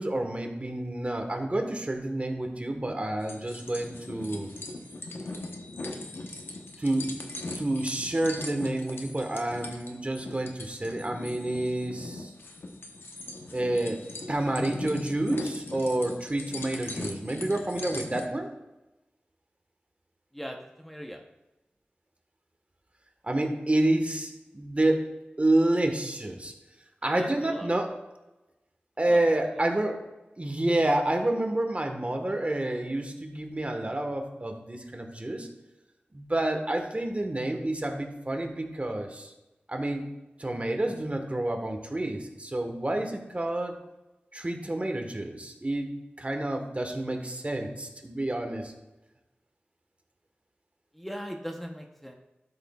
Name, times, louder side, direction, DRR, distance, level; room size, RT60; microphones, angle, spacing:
voice 1, 0.0-4.5 6.8-7.2 7.6-12.3 13.5-14.0 14.3-18.5 23.2-25.1 25.4-26.5 27.0-27.9 29.0-30.0 30.4-35.5 36.1-39.3 39.7-40.0 40.4-43.7 44.3-48.7, right 1 dB, 35° right, 4 dB, 1.3 m, -29 dB
sound 1, 3.2-18.3, left 2 dB, 80° left, 1.0 m, -40 dB
voice 2, 20.3-21.2 27.1-27.7 29.0-29.2 50.9-52.1, equal, 5° left, 3 dB, 0.8 m, -39 dB
12.0 x 6.3 x 2.3 m, 1.0 s
cardioid pair, 40°, 4 cm